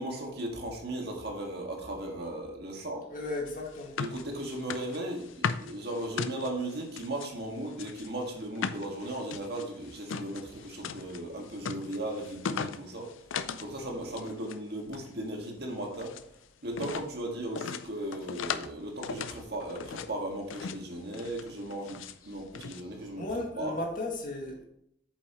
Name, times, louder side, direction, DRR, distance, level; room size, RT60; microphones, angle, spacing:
voice 1, 0.0-3.0 4.0-13.1 13.6-16.1 16.6-22.0 22.2-23.2 23.6-23.8, right 1 dB, 55° right, 1.8 m, -36 dB
voice 2, 3.1-4.0 23.1-24.6, left 2 dB, 45° left, 1.9 m, -35 dB
sound 1, 3.5-7.3 7.7-13.7 14.0-14.6 14.9-16.3 16.7-17.1 17.6-18.7 19.0-20.1 20.5-20.9 21.1-22.2 22.5-22.8, left 6 dB, 80° left, 0.5 m, -38 dB
8.4 x 7.1 x 3.0 m
head